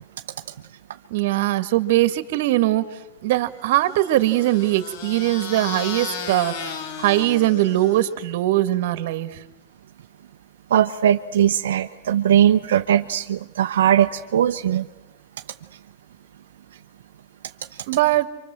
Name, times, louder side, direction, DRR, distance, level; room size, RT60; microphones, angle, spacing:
voice 1, 1.1-2.8 3.2-9.4 17.9-18.3, right 15 dB, 60° right, 11 dB, 2.0 m, -21 dB
sound 1, 3.7-8.3, left 6 dB, 55° left, 2.9 m, -35 dB
voice 2, 10.7-14.9, right 10 dB, 85° right, 5 dB, 0.9 m, -19 dB
29.0 x 25.5 x 7.8 m, 0.95 s
supercardioid pair, 150°, 0 cm